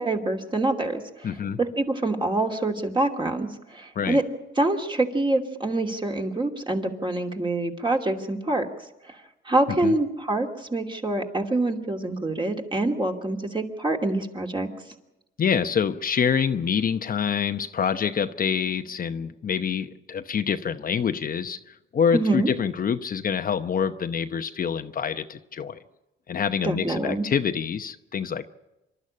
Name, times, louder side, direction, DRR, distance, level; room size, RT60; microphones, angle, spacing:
voice 1, 0.0-1.3 1.6-4.2 4.6-8.7 9.1-9.2 9.5-14.7 22.1-22.5 26.6-27.3, right 2 dB, 25° right, 2 dB, 2.7 m, -25 dB
voice 2, 1.2-1.6 3.9-4.2 9.7-9.9 15.4-25.8 26.3-28.5, left 7 dB, 45° left, 8 dB, 0.9 m, -26 dB
26.0 x 12.5 x 8.7 m, 0.97 s
cardioid pair, 90°, 20 cm